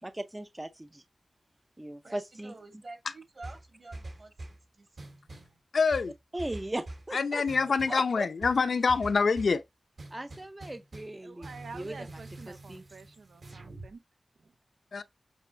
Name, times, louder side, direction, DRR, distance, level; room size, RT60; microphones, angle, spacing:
voice 1, 0.0-1.0 1.8-2.5 6.3-7.4 7.9-8.3 10.1-11.5 11.7-11.9 12.5-12.8, right 1 dB, 20° right, 0.6 m, -38 dB
voice 2, 2.0-5.6, right 2 dB, 55° right, 2.7 m, -50 dB
sound 1, 3.4-4.6 5.0-5.6 5.9-7.1 7.5-8.0 8.4-9.6 10.0-11.2 11.4-13.9, right 2 dB, 70° right, 3.7 m, -45 dB
voice 3, 5.7-6.1 7.1-9.6 14.9-15.0, left 4 dB, 75° left, 0.7 m, -26 dB
voice 4, 11.2-14.0 14.4-14.5, right 4 dB, 90° right, 0.8 m, -48 dB
8.2 x 3.4 x 4.4 m
wide cardioid pair, 105°, 0 cm